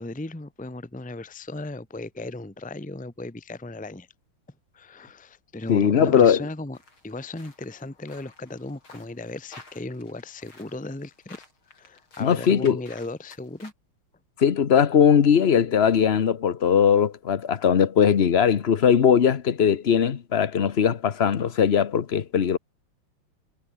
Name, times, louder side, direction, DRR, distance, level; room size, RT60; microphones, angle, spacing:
voice 1, 0.0-4.1 4.7-6.8 7.0-11.4 11.7-13.7, left 2 dB, 5° left, 1.2 m, -36 dB
voice 2, 5.7-6.4 12.2-12.8 14.4-22.6, left 7 dB, 45° left, 0.9 m, -20 dB
sound 1, 6.7-13.7, left 3 dB, 80° left, 7.2 m, -52 dB
omnidirectional pair, 2.2 m